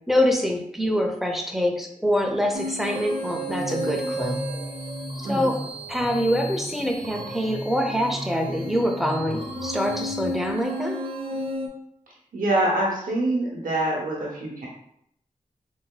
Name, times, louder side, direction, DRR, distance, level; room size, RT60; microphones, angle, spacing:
voice 1, 0.1-4.4 5.3-5.6 5.9-11.0, equal, ahead, 2 dB, 0.6 m, -25 dB
sound 1, 2.5-11.7, equal, 45° right, 0.7 m, -32 dB
voice 2, 12.3-14.7, right 1 dB, 80° right, -4 dB, 0.7 m, -25 dB
3.7 x 2.7 x 2.2 m, 0.74 s
cardioid pair, 55°, 14 cm